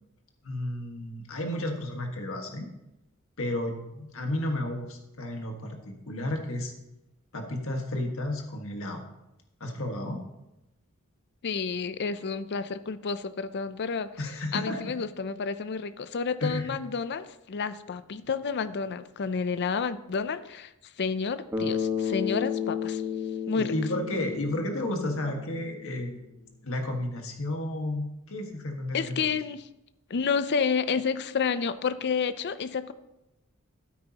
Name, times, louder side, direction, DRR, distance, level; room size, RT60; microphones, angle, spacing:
voice 1, 0.4-2.7 3.4-6.7 7.3-9.0 9.6-10.2 14.2-14.9 16.4-16.7 23.5-26.3 26.6-29.2, left 1 dB, 70° left, 3 dB, 1.7 m, -32 dB
voice 2, 11.4-14.1 14.5-20.7 21.0-23.0 23.5-23.7 28.9-29.7 30.1-32.9, left 5 dB, 50° left, 13 dB, 0.5 m, -30 dB
Bass guitar, 21.5-25.7, left 7 dB, 15° right, 1.4 m, -32 dB
13.0 x 9.3 x 2.9 m, 0.93 s
head